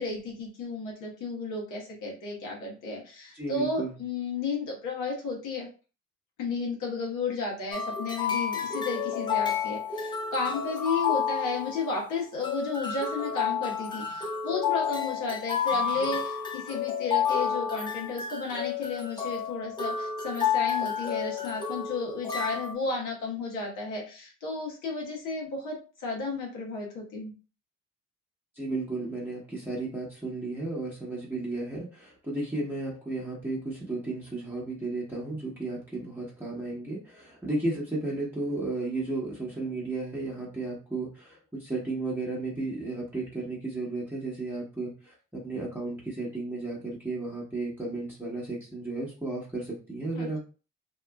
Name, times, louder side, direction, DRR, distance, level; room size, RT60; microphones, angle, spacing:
voice 1, 0.0-5.7 6.4-27.3 50.1-50.4, left 3 dB, 90° left, -1 dB, 1.2 m, -33 dB
voice 2, 3.3-4.0 28.5-50.4, right 2 dB, 5° right, -6 dB, 1.0 m, -34 dB
sound 1, 7.7-22.7, left 7 dB, 15° left, 0.6 m, -30 dB
2.8 x 2.5 x 2.3 m, 0.35 s
cardioid pair, 90°, 30 cm